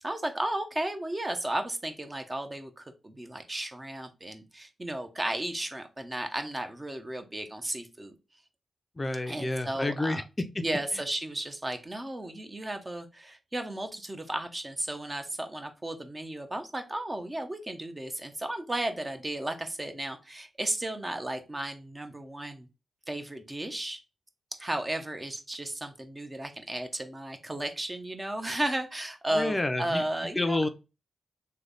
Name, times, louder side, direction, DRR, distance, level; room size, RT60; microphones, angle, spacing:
voice 1, 0.0-8.2 9.3-10.2 10.6-22.7 23.1-24.0 24.5-30.6, right 1 dB, 25° right, 0.7 m, -34 dB
voice 2, 9.0-10.2 29.3-30.0 30.4-30.7, left 2 dB, 30° left, 0.5 m, -29 dB
3.2 x 2.2 x 3.8 m
supercardioid pair, 40°, 0 cm